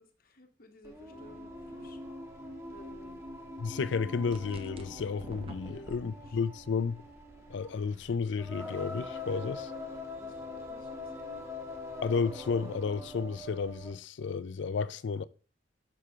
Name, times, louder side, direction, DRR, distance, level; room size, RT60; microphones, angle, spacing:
voice 1, 0.0-2.0 2.6-3.2 5.7-6.4 10.2-11.4, left 1 dB, 55° left, 1.2 m, -55 dB
Singing, 0.8-14.0, left 2 dB, 15° right, 1.3 m, -43 dB
voice 2, 3.6-7.0 7.5-9.7 12.0-15.2, left 5 dB, 70° left, 0.4 m, -32 dB
sound 1, 4.3-6.0, right 1 dB, 30° right, 0.8 m, -47 dB
6.6 x 6.0 x 3.5 m
head